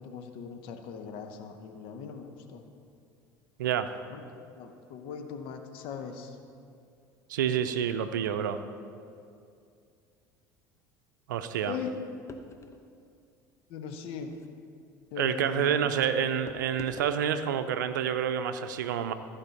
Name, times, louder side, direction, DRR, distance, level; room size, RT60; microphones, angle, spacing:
voice 1, 0.0-2.6 4.1-6.4 11.7-11.9 13.7-14.3 15.1-15.8, left 7 dB, 60° left, 6 dB, 0.9 m, -40 dB
voice 2, 7.3-8.6 11.3-11.8 15.2-19.1, right 9 dB, 85° right, 10 dB, 0.5 m, -28 dB
sound 1, 12.3-12.9 14.2-14.5 16.5-17.2, left 3 dB, 30° left, 0.7 m, -45 dB
14.5 x 5.3 x 4.2 m, 2.4 s
hypercardioid pair, 75°, 10 cm